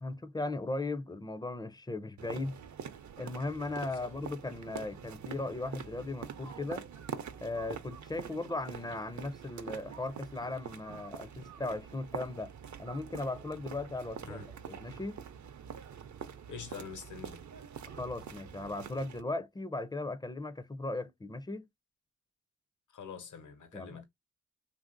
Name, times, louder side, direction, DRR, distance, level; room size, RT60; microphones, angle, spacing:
voice 1, 0.0-2.6 3.2-6.8 7.4-12.5 12.8-15.2 17.9-21.7 23.7-24.0, left 2 dB, 15° left, 0.4 m, -37 dB
sound 1, 2.2-19.2, right 7 dB, 70° right, 0.6 m, -45 dB
voice 2, 16.5-17.4 22.9-24.0, left 5 dB, 75° left, 0.9 m, -45 dB
3.1 x 2.6 x 2.5 m
cardioid pair, 75°, 30 cm